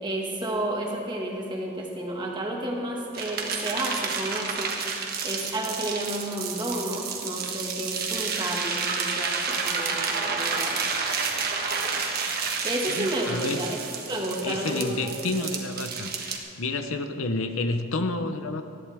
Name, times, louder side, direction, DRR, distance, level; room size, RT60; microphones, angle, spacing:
voice 1, 0.0-10.9 12.6-15.1, right 1 dB, 20° right, -1 dB, 1.8 m, -31 dB
sound 1, 3.1-16.4, right 5 dB, 45° right, 1.4 m, -30 dB
voice 2, 13.0-13.6 14.4-16.1 16.6-18.6, left 2 dB, 80° left, 7 dB, 0.9 m, -29 dB
19.0 x 14.5 x 3.6 m, 2.6 s
head